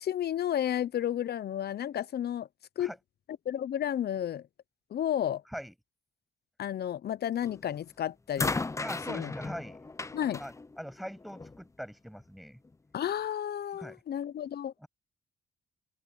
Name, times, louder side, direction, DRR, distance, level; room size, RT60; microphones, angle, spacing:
voice 1, 0.0-2.5 2.8-2.9 3.5-4.4 4.9-5.4 6.6-8.6 9.1-9.3 10.1-10.4 12.9-14.7, left 10 dB, 55° left, 0.7 m, -32 dB
sound 1, 7.4-7.8 8.4-11.6 12.6-12.7, left 3 dB, 15° left, 0.6 m, -36 dB
voice 2, 8.8-9.8 10.4-12.6 13.7-14.0 14.8-14.9, equal, ahead, 7.5 m, -42 dB
open air
cardioid pair, 90°, 20 cm